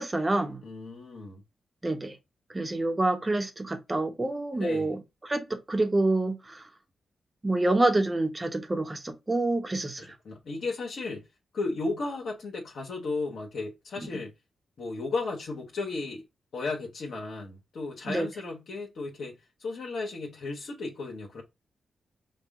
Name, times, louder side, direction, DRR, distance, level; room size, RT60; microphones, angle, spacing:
voice 1, 0.0-0.6 1.8-2.1 2.5-6.6 7.4-10.0 18.1-18.3, right 2 dB, 30° right, 1.0 m, -27 dB
voice 2, 0.6-1.4 4.5-4.9 10.0-11.3 11.5-14.3 14.8-16.2 16.5-21.4, left 3 dB, 75° left, 1.1 m, -34 dB
4.6 x 2.4 x 3.6 m
cardioid pair, 55°, 0 cm